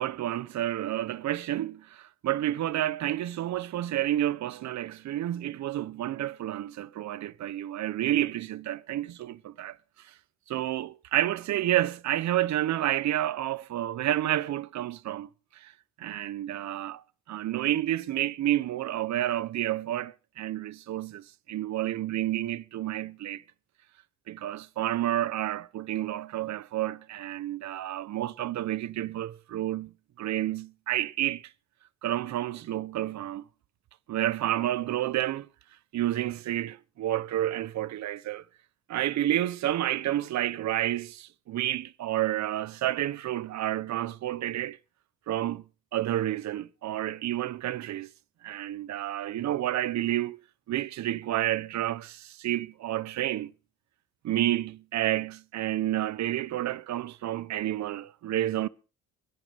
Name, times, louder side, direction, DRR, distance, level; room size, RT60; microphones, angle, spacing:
voice 1, 0.0-9.8 10.0-10.1 10.5-15.7 16.0-23.4 24.3-29.9 30.2-31.5 32.0-33.4 34.1-35.5 35.9-38.4 38.9-44.8 45.3-45.6 45.9-48.1 48.4-50.4 50.7-53.5 54.2-58.7, right 13 dB, 65° right, 0.8 m, -30 dB
23.5 x 11.0 x 3.4 m
cardioid pair, 90°, 30 cm